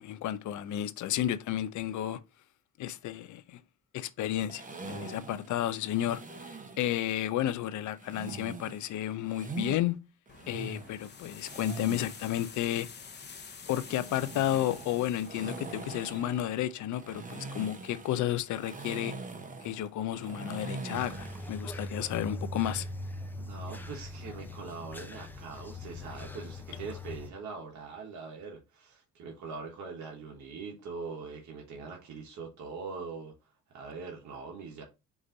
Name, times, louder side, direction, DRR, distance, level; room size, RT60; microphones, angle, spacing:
voice 1, 0.0-2.2 2.8-3.6 3.9-10.0 10.5-12.9 13.7-19.1 19.6-22.8, left 12 dB, 75° left, 0.6 m, -32 dB
sound 1, 4.5-6.9 8.0-9.8 10.3-12.3 13.7-21.6, right 3 dB, 25° right, 0.8 m, -43 dB
sound 2, 10.3-16.2, left 6 dB, 35° left, 0.8 m, -48 dB
sound 3, 20.9-27.3, left 1 dB, 5° left, 0.6 m, -41 dB
voice 2, 23.4-34.8, right 4 dB, 70° right, 1.2 m, -42 dB
4.9 x 2.6 x 3.9 m
cardioid pair, 90°, 30 cm